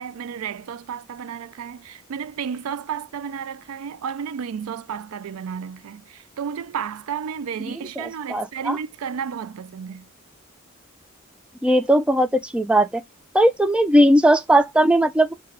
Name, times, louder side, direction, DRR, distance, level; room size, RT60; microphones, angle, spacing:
voice 1, 0.0-10.1, right 7 dB, 85° right, 0.4 m, -32 dB
voice 2, 8.0-8.8 11.6-12.9 13.3-15.3, right 1 dB, 5° right, 0.3 m, -18 dB
4.7 x 2.3 x 4.8 m
head